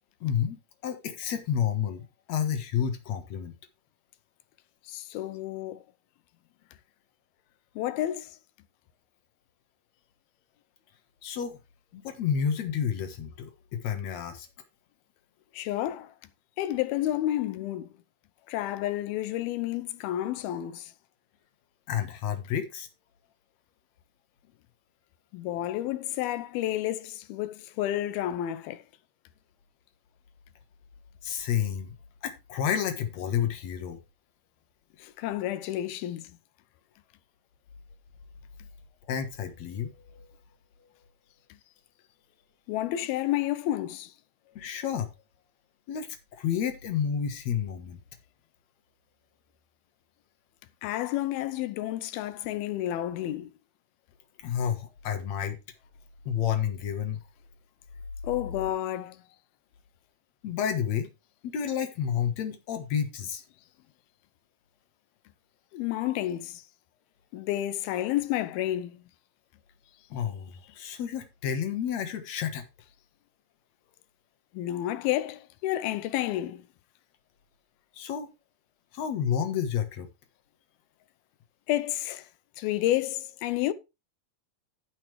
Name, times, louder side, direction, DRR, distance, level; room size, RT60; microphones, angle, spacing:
voice 1, 0.2-0.6 0.8-3.5 11.2-11.6 11.9-14.5 21.9-22.9 31.2-32.0 32.2-34.0 39.1-40.3 44.5-45.1 45.9-46.1 46.3-48.0 54.4-55.6 56.3-57.2 60.4-61.1 61.4-63.4 70.1-72.6 77.9-78.3 78.9-80.1, left 8 dB, 55° left, 2.2 m, -30 dB
voice 2, 4.9-5.8 7.8-8.4 15.5-16.1 16.6-17.9 18.5-20.9 25.3-28.8 35.0-36.4 42.7-44.1 50.8-53.5 58.2-59.2 65.7-66.6 67.3-69.0 74.5-76.6 81.7-82.3 82.6-83.7, left 13 dB, 85° left, 2.6 m, -30 dB
16.0 x 5.7 x 3.2 m
omnidirectional pair, 4.3 m